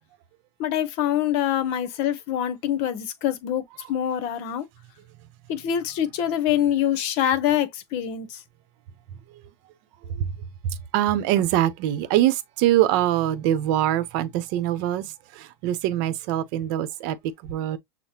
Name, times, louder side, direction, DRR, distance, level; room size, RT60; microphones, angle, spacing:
voice 1, 0.6-3.6 3.9-4.6 5.5-8.3, left 10 dB, 50° left, 0.9 m, -25 dB
voice 2, 10.9-15.0 15.6-17.2 17.4-17.8, right 13 dB, 55° right, 0.8 m, -23 dB
6.4 x 2.1 x 2.9 m
hypercardioid pair, 115°, 14 cm